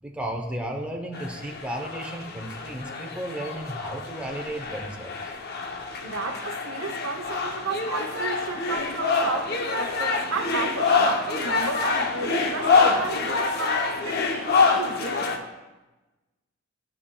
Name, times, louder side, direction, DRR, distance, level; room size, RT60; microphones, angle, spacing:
voice 1, 0.0-5.2, right 1 dB, 5° right, 1 dB, 0.7 m, -34 dB
sound 1, 1.1-15.4, left 4 dB, 55° left, 0.7 m, -26 dB
voice 2, 6.0-15.4, right 3 dB, 75° right, 5 dB, 0.7 m, -33 dB
13.0 x 5.7 x 2.3 m, 1.1 s
head